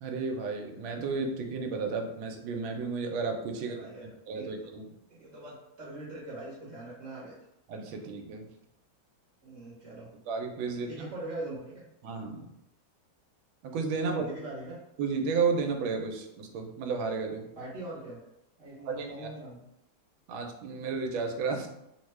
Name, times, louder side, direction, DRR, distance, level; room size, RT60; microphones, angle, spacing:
voice 1, 0.0-4.8 7.7-8.5 10.3-11.1 12.0-12.5 13.6-14.3 15.0-17.5 18.9-19.1 20.3-21.7, right 4 dB, 85° right, 3 dB, 1.4 m, -32 dB
voice 2, 3.6-4.6 5.1-7.4 9.4-10.1 10.7-11.8 14.0-14.8 17.6-18.2 18.6-19.7, right 2 dB, 50° right, -8 dB, 1.1 m, -42 dB
3.4 x 2.2 x 3.1 m, 0.85 s
omnidirectional pair, 2.2 m